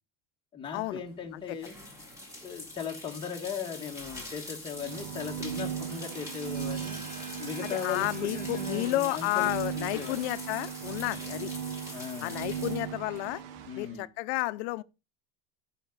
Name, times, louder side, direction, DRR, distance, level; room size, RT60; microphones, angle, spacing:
voice 1, 0.5-1.8 2.4-7.0 7.4-9.5 9.8-10.2 11.9-12.5 13.7-14.1, left 6 dB, 15° left, 1.6 m, -38 dB
sound 1, 0.8-14.0, left 1 dB, 10° right, 3.4 m, -45 dB
sound 2, 4.7-13.8, right 9 dB, 60° right, 0.9 m, -38 dB
sound 3, 6.0-11.6, right 1 dB, 25° right, 7.1 m, -50 dB
voice 2, 7.6-11.5 12.2-13.4 13.8-14.8, left 19 dB, 75° left, 0.7 m, -31 dB
16.0 x 5.9 x 3.9 m
cardioid pair, 170°, 34 cm